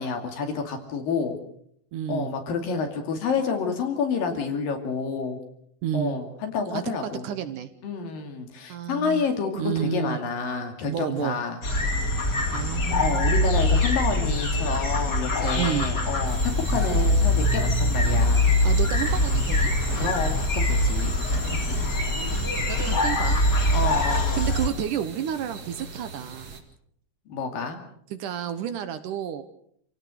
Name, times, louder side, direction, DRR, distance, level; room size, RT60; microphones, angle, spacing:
voice 1, 0.0-1.4 2.1-5.4 5.9-7.3 7.8-11.6 13.0-18.5 20.0-21.9 23.7-24.5 27.3-27.8, left 5 dB, 70° left, 4 dB, 4.2 m, -29 dB
voice 2, 1.9-2.3 5.8-6.2 6.7-7.7 8.7-9.3 9.6-10.2 10.9-11.4 12.5-13.3 15.5-15.9 18.6-20.3 22.5-26.6 28.1-29.4, right 9 dB, 70° right, 10 dB, 2.3 m, -31 dB
sound 1, 11.6-24.7, left 1 dB, 30° left, 3.5 m, -23 dB
sound 2, 16.2-26.6, right 4 dB, 50° right, 3.2 m, -41 dB
27.5 x 17.0 x 6.4 m, 0.68 s
omnidirectional pair, 4.2 m